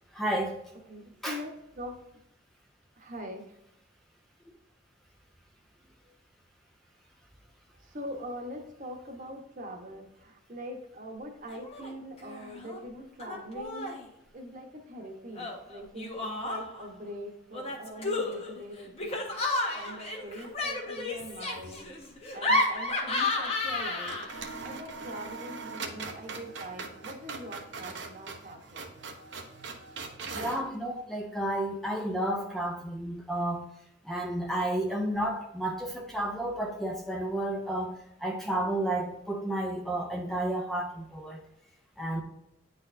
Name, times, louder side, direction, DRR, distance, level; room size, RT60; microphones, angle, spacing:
voice 1, 0.1-0.6 1.2-1.4 26.0-26.1 30.3-33.7 34.0-41.4 42.0-42.2, right 1 dB, ahead, 0 dB, 0.6 m, -31 dB
voice 2, 0.9-2.0 3.0-3.5 7.8-14.0 14.3-22.1 22.3-28.9, equal, 45° right, 3 dB, 1.1 m, -43 dB
Laughter, 11.5-11.9 12.2-12.8 13.2-14.0 15.3-16.9 17.5-24.5, left 2 dB, 35° left, 1.3 m, -32 dB
sound 1, 21.0-21.8 22.0-22.1 23.6-23.8 24.1-30.7, right 4 dB, 70° right, 0.9 m, -41 dB
9.6 x 4.1 x 2.7 m, 0.83 s
head